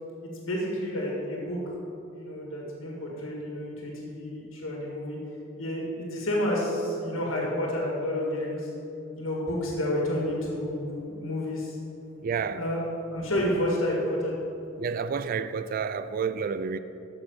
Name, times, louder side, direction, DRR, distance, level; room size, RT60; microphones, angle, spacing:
voice 1, 0.2-1.7 2.1-5.2 5.6-8.7 9.2-11.8 12.5-12.8 13.1-14.3, left 1 dB, 90° left, 1.8 m, -30 dB
voice 2, 12.2-12.6 14.8-16.8, right 6 dB, 45° right, 0.3 m, -30 dB
7.6 x 6.2 x 7.1 m
head